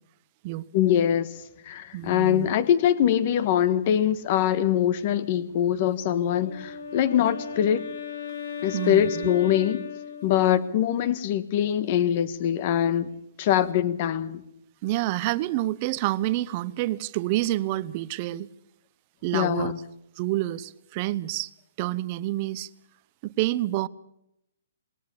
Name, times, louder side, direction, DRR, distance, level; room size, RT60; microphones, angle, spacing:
voice 1, 0.7-1.4 1.6-7.8 8.6-9.8 10.2-13.1 13.4-14.4 19.3-19.8, left 10 dB, 35° left, 16 dB, 1.4 m, -23 dB
voice 2, 1.9-2.5 8.7-9.3 14.8-18.5 19.2-19.7 20.2-21.5 21.8-22.7 23.2-23.9, right 16 dB, 30° right, 17 dB, 0.8 m, -28 dB
Wind instrument woodwind instrument, 6.2-10.8, left 6 dB, 65° left, 2.7 m, -37 dB
21.0 x 18.5 x 7.1 m, 0.80 s
hypercardioid pair, 160°, 0 cm